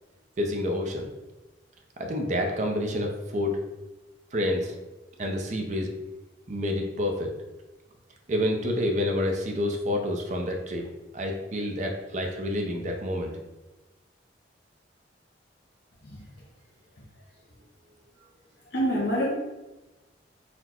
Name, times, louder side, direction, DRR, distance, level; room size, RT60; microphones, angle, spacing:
voice 1, 0.4-1.1 2.0-3.6 4.3-4.7 5.2-5.9 6.5-7.3 8.3-10.9 11.1-13.3, left 1 dB, 40° right, 2 dB, 0.6 m, -28 dB
voice 2, 18.7-19.3, equal, 65° left, -4 dB, 0.8 m, -26 dB
4.1 x 2.1 x 4.3 m, 1.1 s
head